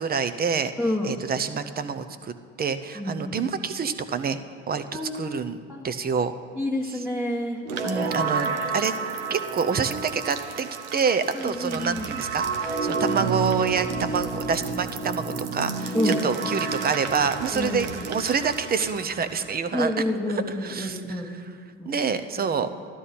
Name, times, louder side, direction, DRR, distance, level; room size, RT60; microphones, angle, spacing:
voice 1, 0.0-0.7 1.0-4.4 4.7-5.6 5.8-6.3 6.8-7.0 7.8-8.9 9.3-19.9 20.6-21.0 21.3-21.4 21.9-22.7, right 5 dB, 25° right, 11 dB, 0.7 m, -27 dB
voice 2, 0.8-1.1 2.9-3.4 4.9-5.4 5.7-5.9 6.6-7.6 11.3-12.1 15.9-16.2 17.5-18.0 19.7-21.4 21.7-21.9 22.3-22.6, left 1 dB, ahead, -4 dB, 1.4 m, -29 dB
sound 1, 7.6-19.5, right 4 dB, 75° right, 1.0 m, -30 dB
14.5 x 12.5 x 4.3 m, 2.1 s
hypercardioid pair, 70°, 36 cm